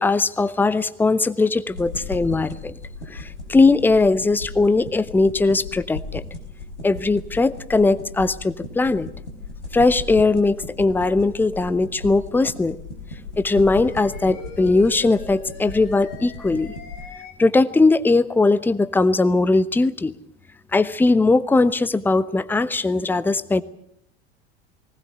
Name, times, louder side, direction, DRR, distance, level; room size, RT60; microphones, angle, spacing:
voice 1, 0.0-2.7 3.1-6.2 6.8-9.1 9.7-12.8 13.4-16.7 17.4-20.1 20.7-23.6, left 3 dB, 5° left, 16 dB, 0.8 m, -19 dB
sound 1, 1.7-17.0, left 3 dB, 80° left, 5.2 m, -36 dB
sound 2, 13.6-17.3, left 4 dB, 50° left, 4.4 m, -41 dB
20.0 x 19.0 x 8.0 m, 0.71 s
figure-of-eight pair, 80°, 35 cm